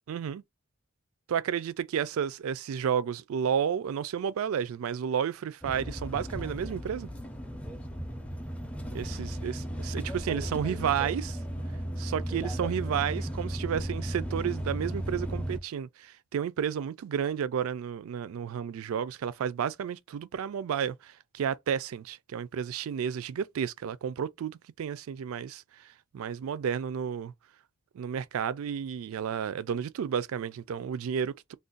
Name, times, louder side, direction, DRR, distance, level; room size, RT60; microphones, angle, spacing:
voice 1, 0.1-0.4 1.3-7.1 8.9-11.4 12.0-25.6 26.1-27.3 27.9-31.5, right 8 dB, 70° right, 0.3 m, -32 dB
sound 1, 5.6-15.6, equal, 5° left, 0.4 m, -35 dB
2.5 x 2.2 x 3.7 m
head